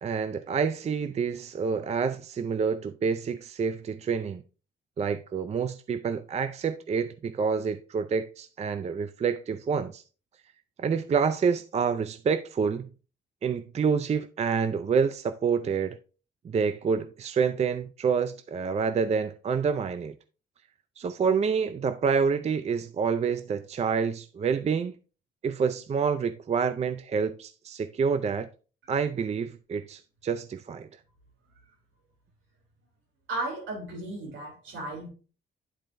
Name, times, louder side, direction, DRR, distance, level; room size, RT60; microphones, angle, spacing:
voice 1, 0.0-4.4 5.0-10.0 10.8-12.9 13.4-16.0 16.4-20.1 21.0-24.9 25.4-28.5 28.9-30.9, right 6 dB, 35° right, 0.4 m, -28 dB
voice 2, 33.3-35.1, right 2 dB, 75° right, 3.3 m, -35 dB
11.0 x 4.3 x 2.6 m
cardioid pair, 90°, 20 cm